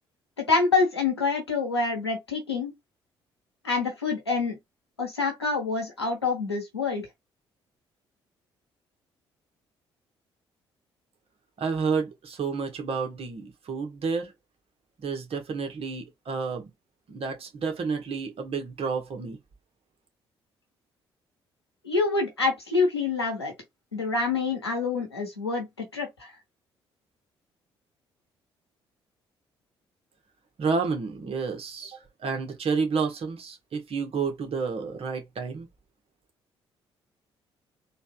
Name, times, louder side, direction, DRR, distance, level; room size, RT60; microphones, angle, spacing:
voice 1, 0.4-2.7 3.6-4.6 5.0-7.0 21.8-23.5 23.9-26.3, left 4 dB, 90° left, 1.0 m, -26 dB
voice 2, 11.6-14.3 15.0-16.7 17.1-19.4 30.6-35.7, right 5 dB, 45° right, 1.4 m, -30 dB
4.1 x 2.5 x 2.4 m
figure-of-eight pair, 45°, 13 cm